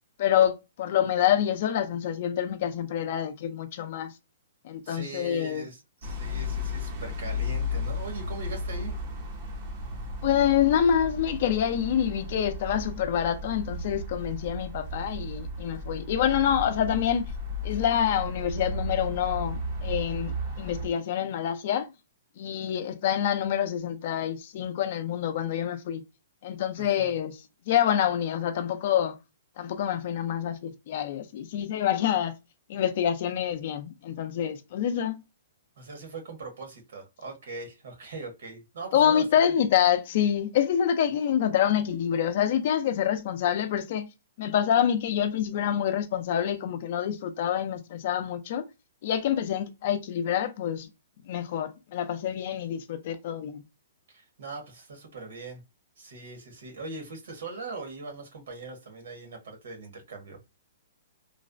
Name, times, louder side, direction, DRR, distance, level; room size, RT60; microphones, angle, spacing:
voice 1, 0.2-4.1 4.6-5.6 10.2-17.3 17.6-21.9 22.4-26.0 26.4-27.4 27.7-29.2 29.6-32.3 32.7-35.2 38.9-44.1 44.4-48.7 49.0-50.9 51.3-53.6, left 9 dB, 45° left, 0.4 m, -26 dB
voice 2, 4.8-9.0 26.8-27.1 35.8-39.3 54.1-55.6 56.0-60.4, right 3 dB, 70° right, 1.3 m, -41 dB
sound 1, 6.0-20.9, left 1 dB, 35° right, 0.6 m, -34 dB
3.1 x 2.0 x 2.5 m
hypercardioid pair, 170°, 0 cm